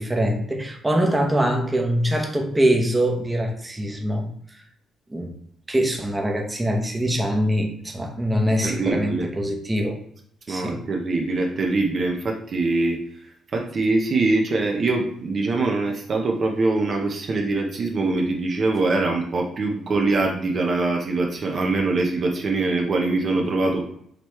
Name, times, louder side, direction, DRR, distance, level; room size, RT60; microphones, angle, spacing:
voice 1, 0.0-4.3 5.1-5.3 5.7-10.0 10.5-10.8, equal, 15° right, 2 dB, 0.9 m, -23 dB
voice 2, 8.6-9.3 10.5-13.0 13.5-23.8, right 3 dB, 50° right, 1 dB, 0.7 m, -23 dB
5.1 x 3.0 x 3.1 m, 0.66 s
cardioid pair, 90°, 0 cm